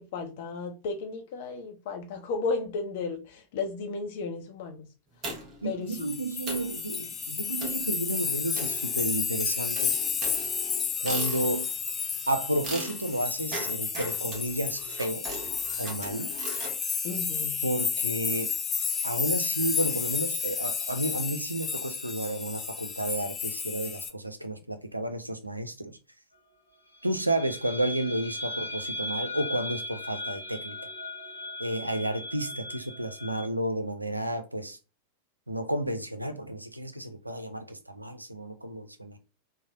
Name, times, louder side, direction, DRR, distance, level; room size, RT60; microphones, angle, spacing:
voice 1, 0.0-4.9 5.6-6.2 17.0-17.6, left 4 dB, 50° left, 0.7 m, -34 dB
sound 1, 5.2-5.7 6.1-6.2 6.5-6.8 7.6-7.9 8.5-9.3 9.7-11.8 12.6-16.8, right 1 dB, 25° right, 1.1 m, -39 dB
voice 2, 5.6-10.0 11.0-11.7 12.3-15.2 15.8-16.3 17.6-18.5 19.0-26.0 27.0-30.9 31.6-34.8 35.5-39.2, right 1 dB, 85° right, 0.4 m, -31 dB
sound 2, 5.9-24.1, left 6 dB, 20° left, 0.4 m, -31 dB
sound 3, 26.9-33.5, left 1 dB, 85° left, 0.7 m, -38 dB
3.1 x 2.1 x 2.5 m
figure-of-eight pair, 90°, 0 cm